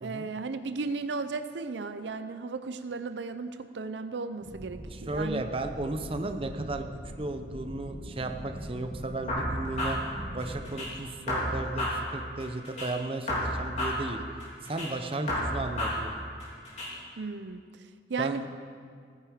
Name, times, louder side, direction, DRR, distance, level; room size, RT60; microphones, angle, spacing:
voice 1, 0.0-5.5 17.2-17.6 18.1-18.4, right 4 dB, 85° right, 10 dB, 0.6 m, -35 dB
sound 1, 4.4-10.7, equal, 50° right, 1.7 m, -42 dB
voice 2, 4.9-6.9 7.2-14.2 14.6-16.2 18.2-18.5, right 2 dB, 30° right, 6 dB, 0.7 m, -34 dB
sound 2, 9.3-10.9 11.3-12.9 13.3-14.9 15.3-16.9, left 1 dB, 40° left, 3.8 m, -32 dB
16.0 x 9.6 x 5.1 m, 2.1 s
head